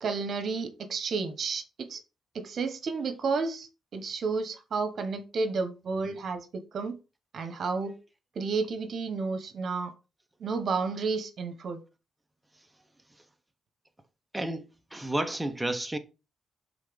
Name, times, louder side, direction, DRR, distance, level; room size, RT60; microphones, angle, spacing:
voice 1, 0.0-2.0 2.3-7.0 7.3-7.9 8.3-9.9 10.4-11.8, right 4 dB, 55° right, 1.1 m, -31 dB
voice 2, 14.3-14.6 14.9-16.0, right 1 dB, 10° right, 0.8 m, -31 dB
5.6 x 3.9 x 5.1 m
cardioid pair, 125°, 0 cm